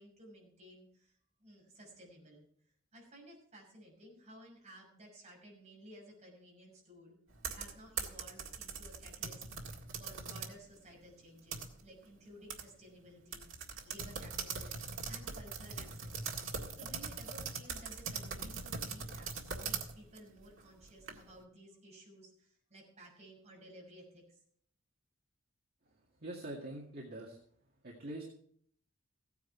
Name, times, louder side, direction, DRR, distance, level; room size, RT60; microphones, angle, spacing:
voice 1, 0.0-2.5 2.9-7.2 7.5-14.8 15.1-16.3 16.7-24.4, equal, 35° right, -2 dB, 6.2 m, -56 dB
Macbook typing and clicking, 7.3-10.6 11.0-12.1 12.5-12.6 12.9-13.0 13.3-21.4, right 5 dB, 75° right, 1.8 m, -41 dB
voice 2, 26.2-27.4 27.8-28.2, right 1 dB, 50° right, -1 dB, 2.0 m, -44 dB
16.0 x 9.5 x 4.6 m, 0.62 s
head